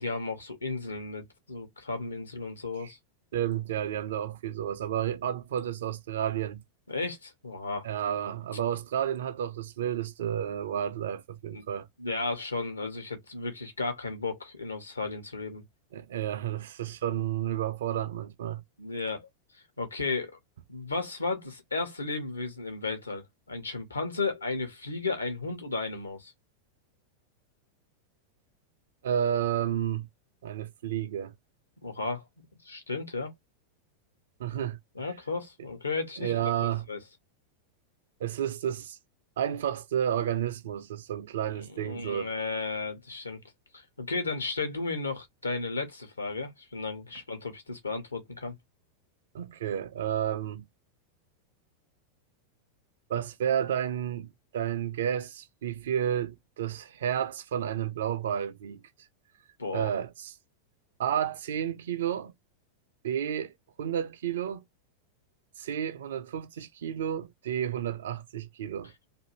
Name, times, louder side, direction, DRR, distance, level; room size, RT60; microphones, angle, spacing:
voice 1, 0.0-3.0 6.9-7.9 11.5-11.7 12.0-15.6 18.8-19.3 19.5-20.4 20.7-26.3 31.8-32.2 32.6-33.3 34.9-37.0 41.7-43.4 43.7-48.6 59.6-59.9, left 3 dB, 80° left, 0.9 m, -34 dB
voice 2, 3.3-6.6 7.8-11.9 15.9-18.6 29.0-30.1 30.4-31.3 34.4-35.1 36.2-36.8 38.2-39.0 39.4-42.3 49.3-50.6 53.1-58.8 59.7-60.3 61.0-62.3 63.0-63.5 63.8-64.6 65.6-68.9, right 10 dB, 60° right, 0.4 m, -31 dB
2.6 x 2.5 x 2.9 m
figure-of-eight pair, 90°, 0 cm